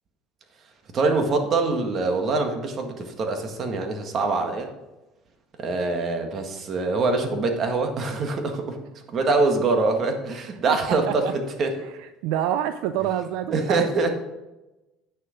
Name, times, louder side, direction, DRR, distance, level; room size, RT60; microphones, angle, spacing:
voice 1, 0.9-4.7 5.6-8.8 9.1-11.7 13.5-14.1, right 3 dB, 40° right, 4 dB, 1.7 m, -24 dB
voice 2, 12.2-13.9, right 11 dB, 80° right, 10 dB, 0.4 m, -26 dB
8.9 x 6.6 x 5.0 m, 1.0 s
supercardioid pair, 110°, 0 cm